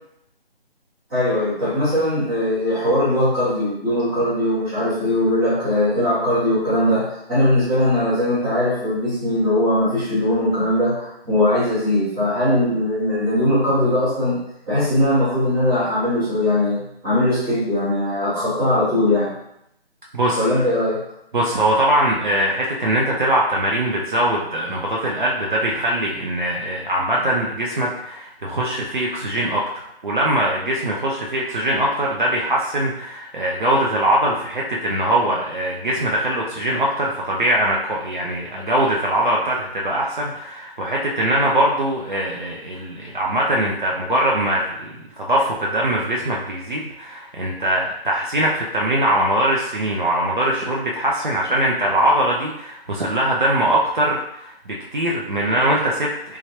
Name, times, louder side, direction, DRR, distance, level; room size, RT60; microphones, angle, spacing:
voice 1, 1.1-14.4 14.7-19.3 20.4-21.0, left 1 dB, 10° right, -14 dB, 0.9 m, -20 dB
voice 2, 21.3-29.6 30.0-56.4, right 1 dB, 50° right, -4 dB, 0.5 m, -21 dB
3.2 x 2.3 x 2.9 m, 0.77 s
figure-of-eight pair, 155°, 32 cm